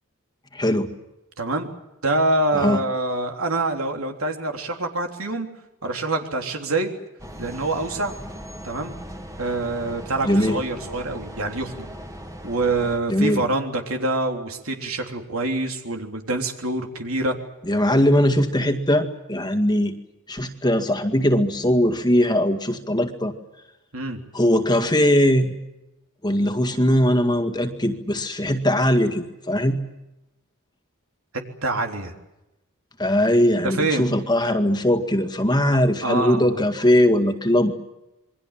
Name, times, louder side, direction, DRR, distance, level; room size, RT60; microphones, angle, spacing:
voice 1, 0.5-0.9 2.5-2.8 10.2-10.6 13.1-13.4 17.6-19.9 20.3-23.3 24.3-25.5 26.2-29.8 33.0-37.7, left 1 dB, 20° left, 6 dB, 2.0 m, -20 dB
voice 2, 1.4-1.7 2.0-5.5 5.8-6.9 7.4-8.1 8.6-9.0 9.4-11.9 12.4-17.4 23.9-24.2 31.6-32.1 33.6-34.1 36.0-36.6, right 2 dB, 75° right, 4 dB, 3.5 m, -25 dB
sound 1, 7.2-13.0, equal, 15° right, 2.4 m, -38 dB
28.0 x 23.0 x 7.5 m, 0.95 s
head